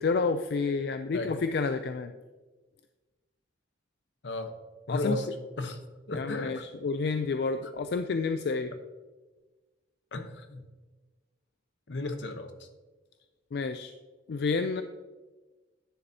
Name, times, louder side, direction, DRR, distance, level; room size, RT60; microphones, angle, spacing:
voice 1, 0.0-2.1 4.9-5.2 6.1-8.7 13.5-13.9 14.3-14.8, left 4 dB, 60° left, 9 dB, 0.3 m, -29 dB
voice 2, 4.9-5.3 5.6-5.8 6.1-6.6 10.1-10.6 11.9-12.7, left 2 dB, 80° left, 7 dB, 0.9 m, -34 dB
10.5 x 6.7 x 2.8 m, 1.2 s
head